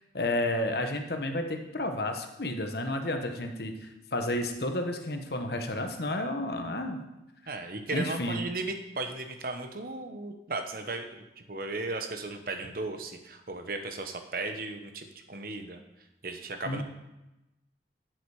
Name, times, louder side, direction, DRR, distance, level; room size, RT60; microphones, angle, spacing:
voice 1, 0.1-7.0 7.9-8.4 16.7-16.8, left 1 dB, 60° left, 5 dB, 1.1 m, -31 dB
voice 2, 7.5-15.8 16.2-16.8, right 3 dB, 50° right, 7 dB, 1.1 m, -36 dB
11.0 x 7.9 x 4.9 m, 0.97 s
head